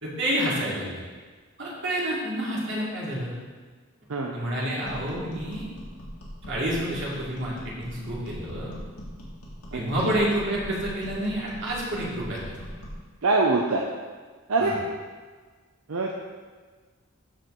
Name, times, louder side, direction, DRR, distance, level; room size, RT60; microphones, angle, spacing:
voice 1, 0.0-1.0 1.6-3.3 4.3-5.6 6.4-8.7 9.7-12.5 14.6-14.7, right 1 dB, 55° right, -6 dB, 2.5 m, -29 dB
sound 1, 4.8-13.0, equal, 85° left, 2.2 m, -41 dB
voice 2, 9.7-10.2 13.2-13.8 14.5-14.8 15.9-16.1, right 3 dB, 75° right, 0 dB, 0.7 m, -24 dB
13.0 x 4.5 x 3.9 m, 1.5 s
head